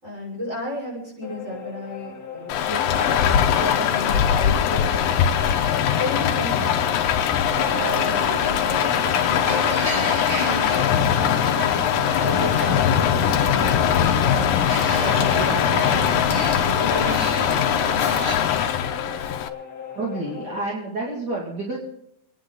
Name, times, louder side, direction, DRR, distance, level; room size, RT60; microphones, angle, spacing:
voice 1, 0.0-5.5 6.0-7.1 7.6-11.8 12.2-14.5 14.9-18.1, left 1 dB, 15° right, -4 dB, 6.3 m, -34 dB
sound 1, 1.2-20.6, left 8 dB, 45° left, 1.3 m, -38 dB
Rain, 2.5-19.5, left 9 dB, 70° left, 2.3 m, -21 dB
sound 2, 7.4-18.4, right 1 dB, 65° right, 9.5 m, -31 dB
voice 2, 19.9-21.8, right 2 dB, 35° right, -3 dB, 2.0 m, -29 dB
27.0 x 10.0 x 3.9 m, 0.75 s
omnidirectional pair, 4.9 m